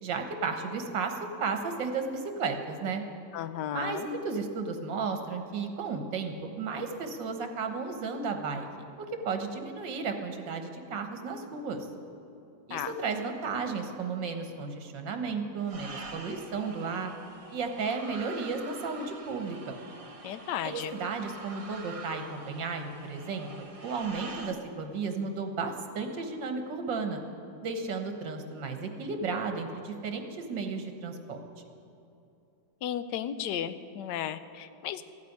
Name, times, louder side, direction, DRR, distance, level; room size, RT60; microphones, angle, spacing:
voice 1, 0.0-3.0 3.7-8.7 9.3-11.8 12.7-17.1 17.5-19.8 20.6-27.2 27.6-31.4, right 4 dB, 75° right, 6 dB, 1.9 m, -34 dB
voice 2, 3.3-4.1 12.7-12.9 20.2-20.9 32.8-35.0, left 10 dB, 70° left, 12 dB, 1.2 m, -34 dB
sound 1, 15.6-24.5, right 3 dB, 30° right, 0.6 m, -46 dB
14.5 x 8.4 x 9.5 m, 2.8 s
omnidirectional pair, 2.0 m